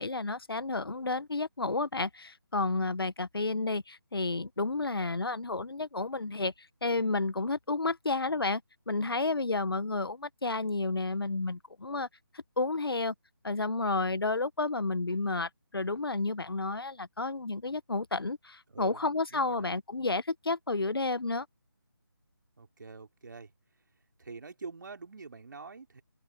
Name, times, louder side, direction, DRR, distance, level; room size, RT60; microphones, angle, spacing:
voice 1, 0.0-6.5 6.8-8.6 8.9-12.1 12.6-13.1 13.4-21.5, left 3 dB, 75° left, 1.3 m, -31 dB
voice 2, 18.7-19.7 22.6-23.5 24.2-26.0, right 4 dB, 55° right, 4.0 m, -45 dB
open air
figure-of-eight pair, 160°, 12 cm